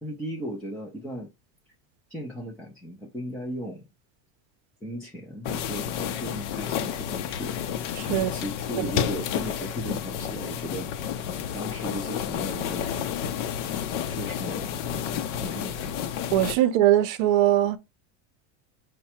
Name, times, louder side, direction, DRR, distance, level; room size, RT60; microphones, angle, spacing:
voice 1, 0.0-1.3 2.1-3.8 4.8-7.6 8.1-10.9 11.5-13.4 14.1-16.0, equal, 5° left, 0.3 m, -37 dB
sound 1, 5.4-16.5, left 9 dB, 75° left, 0.7 m, -31 dB
voice 2, 16.3-17.8, right 13 dB, 50° right, 0.6 m, -20 dB
5.6 x 2.2 x 4.2 m
supercardioid pair, 170°, 35 cm